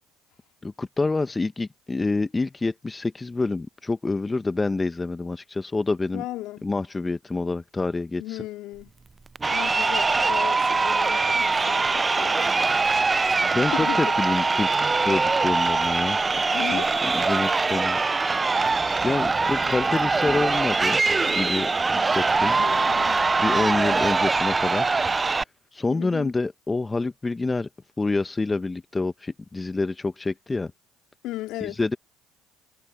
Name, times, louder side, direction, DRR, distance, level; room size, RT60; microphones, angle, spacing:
voice 1, 0.6-6.2 6.6-8.2 13.4-16.2 16.7-18.0 19.0-21.0 21.3-22.6 23.4-24.9 25.7-27.7 28.0-30.7 31.6-32.0, left 3 dB, 20° left, 1.1 m, -27 dB
voice 2, 6.1-6.7 8.2-8.9 9.5-12.6 13.3-14.1 16.5-16.9 22.5-24.0 25.9-26.3 31.2-31.8, left 16 dB, 70° left, 3.1 m, -36 dB
Crowd, 9.4-25.4, right 4 dB, 25° right, 0.4 m, -22 dB
hypercardioid pair, 70°, 0 cm